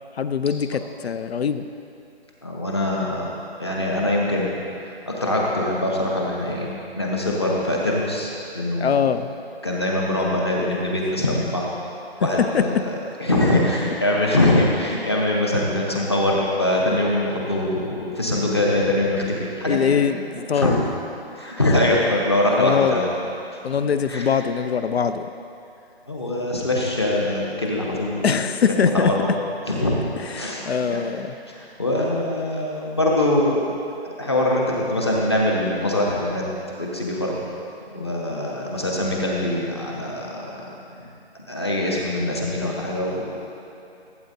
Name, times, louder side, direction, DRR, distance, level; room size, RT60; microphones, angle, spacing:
voice 1, 0.2-1.6 8.8-9.4 12.5-12.6 19.6-20.8 22.6-23.0 23.6-25.3 28.2-29.1 30.3-31.3, left 7 dB, 75° left, 10 dB, 0.6 m, -22 dB
voice 2, 2.4-3.3 3.6-4.5 4.8-6.7 7.0-9.1 9.6-11.7 12.2-20.0 20.5-20.8 21.3-23.1 24.1-24.3 26.1-28.4 28.8-29.4 29.7-31.1 31.5-33.6 34.2-36.5 36.8-37.4 37.9-40.7 41.5-43.3, left 1 dB, 25° left, -3 dB, 0.9 m, -23 dB
15.5 x 8.3 x 2.7 m, 2.7 s
hypercardioid pair, 175°, 32 cm